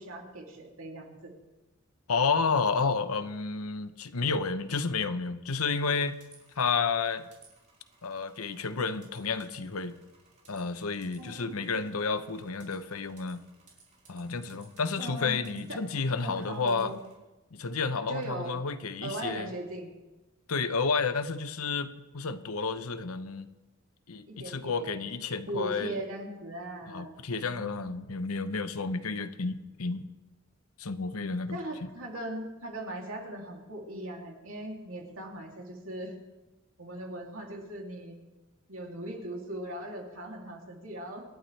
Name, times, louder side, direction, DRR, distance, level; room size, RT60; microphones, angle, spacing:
voice 1, 0.0-1.3 11.2-11.9 15.0-15.8 16.2-17.0 18.1-18.6 19.0-19.9 24.3-25.1 25.5-28.0 31.5-36.1 36.8-38.2 38.7-41.2, right 1 dB, 65° right, 0 dB, 2.9 m, -39 dB
voice 2, 2.1-6.2 6.6-7.2 8.0-10.0 10.5-13.4 14.1-16.9 17.5-19.5 20.5-23.5 24.1-26.0 26.9-30.0 30.8-31.6, left 4 dB, 85° left, 11 dB, 0.9 m, -31 dB
sound 1, 5.7-17.2, right 4 dB, 35° right, 4.1 m, -61 dB
27.0 x 11.5 x 3.4 m, 1.1 s
head